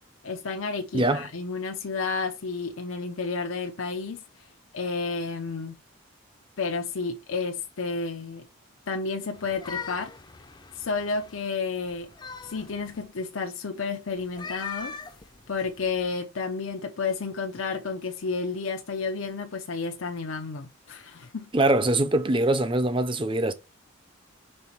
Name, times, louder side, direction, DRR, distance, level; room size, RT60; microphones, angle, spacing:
voice 1, 0.2-4.5 4.7-5.8 6.6-8.4 8.9-10.1 10.7-12.1 12.4-14.9 15.5-21.5, left 4 dB, 75° left, 0.7 m, -31 dB
voice 2, 0.9-1.3 21.5-23.5, right 2 dB, 25° right, 0.6 m, -23 dB
sound 1, 9.3-11.4 11.9-13.1 14.2-16.0, left 5 dB, 20° left, 0.5 m, -40 dB
5.5 x 3.9 x 4.4 m
head